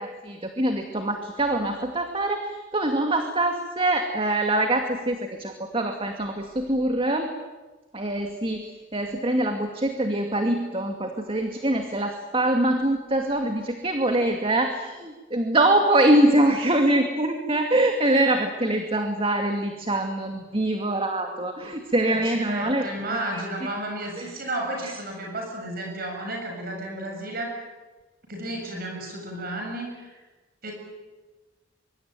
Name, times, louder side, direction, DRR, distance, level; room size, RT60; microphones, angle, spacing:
voice 1, 0.0-7.3 7.9-22.9 23.6-23.7 24.2-24.3 24.8-24.9, right 1 dB, 30° right, 4 dB, 2.4 m, -24 dB
voice 2, 22.1-27.5 28.3-30.2 30.6-30.7, right 1 dB, 50° right, 1 dB, 7.2 m, -32 dB
24.5 x 24.5 x 9.3 m, 1.2 s
head